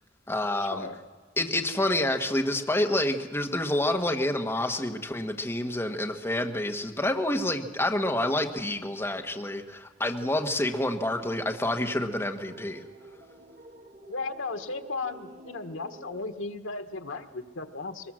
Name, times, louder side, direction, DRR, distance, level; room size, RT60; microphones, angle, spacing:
voice 1, 0.3-0.9 1.4-12.8, left 1 dB, 15° left, 4 dB, 1.3 m, -28 dB
sound 1, 10.2-16.2, right 1 dB, 40° right, 1.8 m, -50 dB
voice 2, 14.1-18.1, left 3 dB, 90° left, 8 dB, 1.4 m, -35 dB
22.0 x 20.0 x 7.6 m, 1.5 s
head